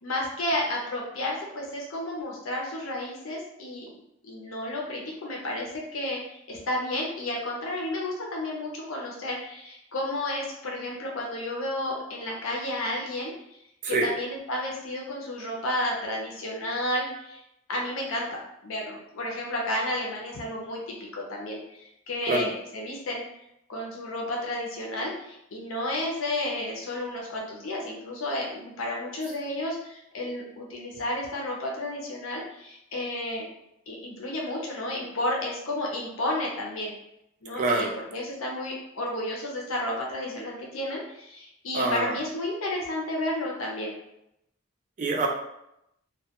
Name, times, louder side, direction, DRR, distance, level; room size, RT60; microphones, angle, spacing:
voice 1, 0.0-3.9 4.2-13.3 13.9-17.4 17.7-23.2 23.7-33.5 33.9-36.9 37.4-43.9, left 1 dB, 85° left, -2 dB, 0.6 m, -32 dB
voice 2, 37.6-37.9 41.7-42.1 45.0-45.3, right 2 dB, 40° right, 0 dB, 0.4 m, -25 dB
2.2 x 2.2 x 2.8 m, 0.82 s
head